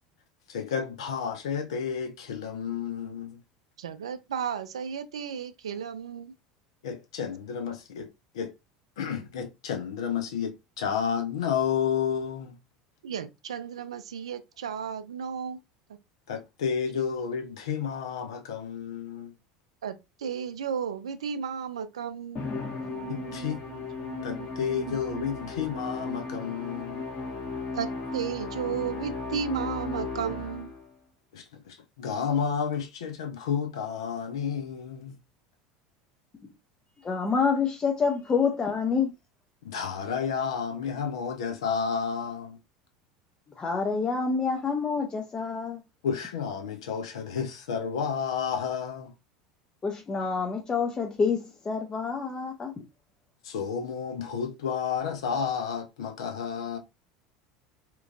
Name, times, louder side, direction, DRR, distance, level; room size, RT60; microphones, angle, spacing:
voice 1, 0.5-3.4 6.8-8.1 8.3-8.5 9.0-12.6 16.3-19.3 23.1-23.6 24.2-27.0 31.3-35.2 39.6-42.6 46.0-49.1 53.4-56.8, left 7 dB, 70° left, 0.6 m, -31 dB
voice 2, 3.8-6.3 13.0-15.6 19.8-22.5 22.8-25.3 27.8-30.7, right 7 dB, 75° right, 0.3 m, -34 dB
Musical instrument, 22.4-30.9, left 3 dB, 45° left, 1.1 m, -36 dB
voice 3, 37.0-39.1 43.6-45.8 49.8-52.7, left 5 dB, 25° left, 0.5 m, -27 dB
3.0 x 2.4 x 2.4 m
figure-of-eight pair, 75°, 3 cm